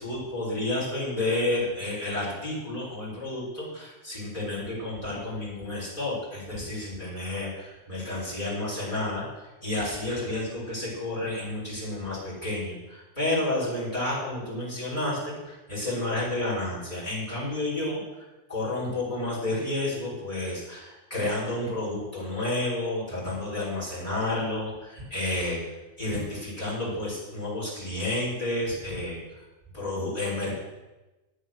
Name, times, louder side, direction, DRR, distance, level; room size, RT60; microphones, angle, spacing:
voice 1, 0.0-9.3 9.6-18.0 18.5-25.6 26.0-29.2 29.7-30.6, left 2 dB, 30° left, -6 dB, 5.7 m, -30 dB
10.5 x 9.9 x 6.5 m, 1.1 s
omnidirectional pair, 1.3 m